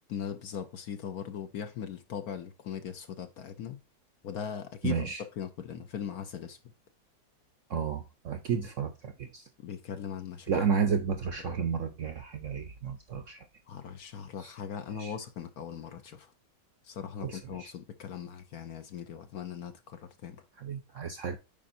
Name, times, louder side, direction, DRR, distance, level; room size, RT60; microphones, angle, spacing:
voice 1, 0.0-3.8 4.2-6.6 9.6-10.6 11.4-11.6 13.7-16.3 16.8-20.4, left 8 dB, 65° left, 1.0 m, -39 dB
voice 2, 4.8-5.2 7.7-9.5 10.5-13.5 14.4-14.5 15.0-15.1 17.2-17.7 20.6-21.4, right 6 dB, 65° right, 0.8 m, -32 dB
8.7 x 5.0 x 2.6 m
omnidirectional pair, 2.0 m